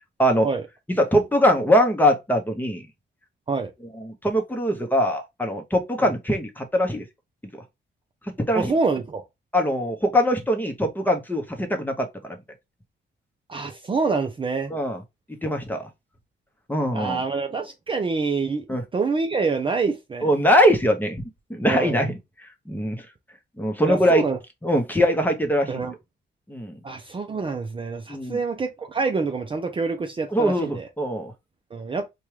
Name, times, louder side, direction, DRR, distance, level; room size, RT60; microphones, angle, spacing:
voice 1, 1.0-2.8 4.0-7.1 7.5-7.6 8.3-8.7 9.5-12.4 14.7-15.0 15.4-15.9 16.7-17.2 18.7-18.8 20.2-21.2 21.5-22.1 22.7-23.0 23.6-24.2 24.6-25.7 26.5-26.8 28.1-28.4 30.3-31.3, equal, 10° left, 0.9 m, -22 dB
voice 2, 8.5-9.2 13.5-14.7 16.9-20.3 21.7-22.0 23.8-24.4 25.7-25.9 26.8-30.9 31.7-32.1, right 4 dB, 25° right, 0.5 m, -26 dB
4.4 x 2.3 x 3.1 m
cardioid pair, 110°, 20 cm